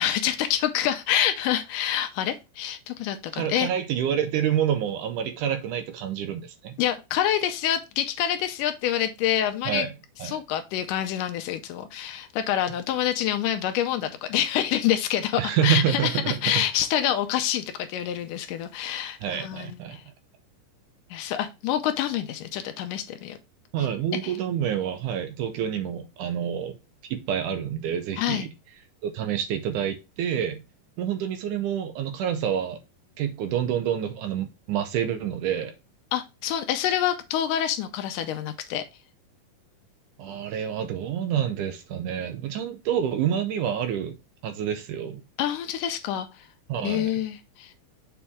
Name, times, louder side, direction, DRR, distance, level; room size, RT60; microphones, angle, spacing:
voice 1, 0.0-3.7 6.8-9.9 10.2-20.0 21.1-23.4 24.2-24.3 28.2-28.5 36.1-38.8 45.4-46.4 46.8-47.7, left 11 dB, 80° left, 2.1 m, -27 dB
voice 2, 3.3-6.8 9.7-9.9 10.2-10.4 15.4-16.7 19.2-20.0 23.7-26.8 27.1-28.5 29.0-30.6 31.0-32.8 33.2-35.7 40.2-44.2 44.4-45.2 46.7-47.1, right 9 dB, 75° right, 2.1 m, -28 dB
6.9 x 4.2 x 3.5 m
omnidirectional pair, 4.0 m